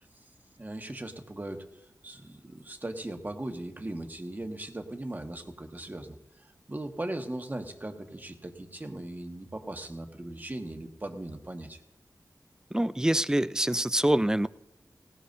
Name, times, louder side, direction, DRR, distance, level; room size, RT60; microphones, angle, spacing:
voice 1, 0.6-11.8, right 1 dB, 25° right, 4 dB, 1.5 m, -39 dB
voice 2, 12.7-14.5, right 1 dB, 10° right, 15 dB, 0.4 m, -25 dB
19.5 x 18.0 x 2.7 m, 0.90 s
wide cardioid pair, 65°, 7 cm